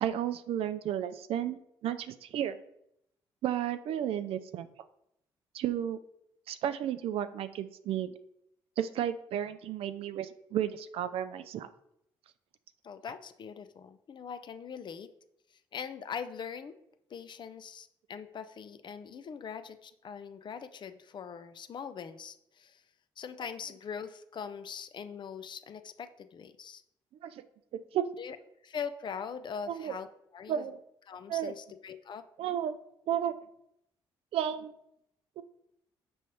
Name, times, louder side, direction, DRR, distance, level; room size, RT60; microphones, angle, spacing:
voice 1, 0.0-2.6 3.4-4.7 5.5-6.0 6.5-8.1 8.8-11.7 27.2-27.4 27.7-28.0 29.7-30.0 30.5-30.8 31.3-31.5 32.4-32.7 33.1-33.4 34.3-34.7 35.4-35.5, right 10 dB, 70° right, 11 dB, 0.4 m, -33 dB
voice 2, 12.8-15.1 15.7-16.8 17.1-22.8 23.2-26.8 28.2-28.4 28.6-30.1 30.3-30.6 31.1-32.3, left 7 dB, 50° left, 11 dB, 0.4 m, -42 dB
5.5 x 3.1 x 3.1 m, 0.77 s
supercardioid pair, 60°, 10 cm